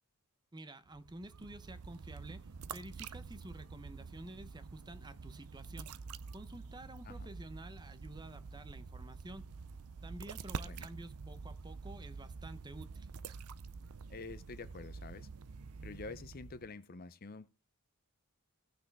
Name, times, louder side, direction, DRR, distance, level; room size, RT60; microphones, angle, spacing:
voice 1, 0.5-5.9 6.3-9.4 10.0-13.1, right 1 dB, 20° right, 0.8 m, -50 dB
sound 1, 0.9-16.8, right 5 dB, 80° right, 0.6 m, -47 dB
voice 2, 14.1-15.3 15.8-17.5, left 3 dB, 40° left, 0.6 m, -47 dB
17.5 x 6.1 x 3.5 m
head